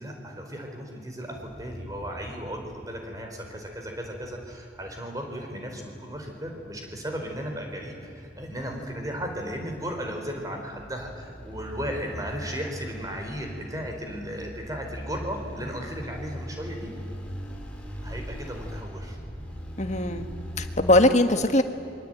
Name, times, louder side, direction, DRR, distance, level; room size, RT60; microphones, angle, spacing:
voice 1, 0.0-16.9 18.0-19.2, equal, 20° right, 3 dB, 4.4 m, -35 dB
sound 1, 1.3-21.1, equal, 5° left, 3.6 m, -41 dB
voice 2, 19.8-20.3 20.6-21.6, left 1 dB, 40° left, 7 dB, 1.6 m, -20 dB
27.5 x 24.0 x 9.2 m, 2.7 s
head